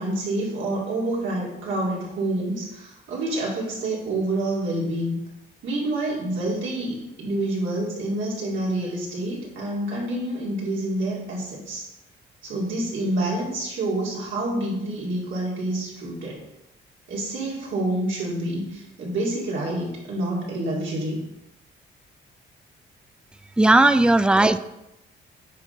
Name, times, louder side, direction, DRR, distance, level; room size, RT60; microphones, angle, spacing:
voice 1, 0.0-5.2 5.6-11.8 12.4-16.4 17.1-21.2, right 1 dB, 75° right, -4 dB, 2.5 m, -27 dB
voice 2, 23.6-24.6, right 2 dB, 5° right, 12 dB, 0.3 m, -16 dB
9.3 x 4.3 x 3.9 m, 0.89 s
cardioid pair, 90°, 20 cm